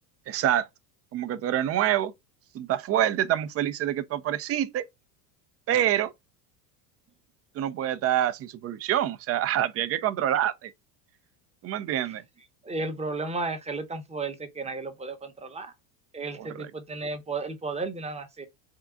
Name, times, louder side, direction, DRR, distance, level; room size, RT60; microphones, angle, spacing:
voice 1, 0.3-0.7 1.1-2.1 2.5-4.8 5.7-6.1 7.6-10.7 11.6-12.2 16.4-16.7, right 11 dB, 35° right, 0.4 m, -26 dB
voice 2, 12.6-15.7 16.1-18.5, right 3 dB, 15° right, 0.8 m, -33 dB
3.6 x 2.4 x 3.6 m
supercardioid pair, 100°, 47 cm